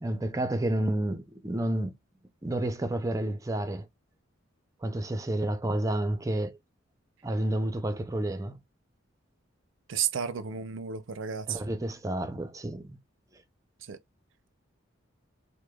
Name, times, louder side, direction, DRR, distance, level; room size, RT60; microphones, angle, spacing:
voice 1, 0.0-1.9 2.4-3.9 4.8-6.6 7.2-8.6 11.5-13.0, right 1 dB, 15° right, 0.5 m, -30 dB
voice 2, 9.9-11.6 13.9-14.0, right 8 dB, 70° right, 0.5 m, -32 dB
4.9 x 2.1 x 2.2 m
head